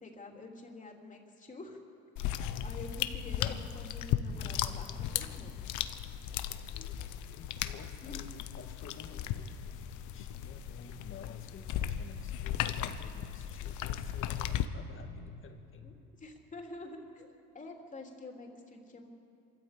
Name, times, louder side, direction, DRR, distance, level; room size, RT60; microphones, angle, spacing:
voice 1, 0.0-1.8 2.6-5.5 8.0-8.2 15.8-19.1, left 2 dB, 25° left, 2 dB, 3.3 m, -47 dB
sound 1, 2.2-14.7, left 11 dB, 70° left, 1.1 m, -36 dB
voice 2, 6.7-16.0, left 5 dB, 40° left, 5 dB, 2.1 m, -51 dB
25.0 x 14.0 x 8.4 m, 2.9 s
cardioid pair, 115°, 31 cm